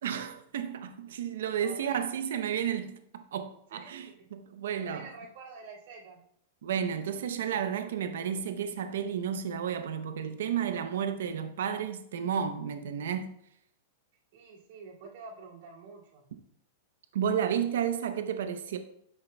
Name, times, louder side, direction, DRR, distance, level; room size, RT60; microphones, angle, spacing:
voice 1, 0.0-5.1 6.6-13.3 17.1-18.8, right 8 dB, 80° right, 0.7 m, -32 dB
voice 2, 1.6-2.2 3.7-4.2 4.8-6.2 14.3-16.2, right 4 dB, 60° right, 2.3 m, -48 dB
9.5 x 6.6 x 2.2 m
supercardioid pair, 160°, 0 cm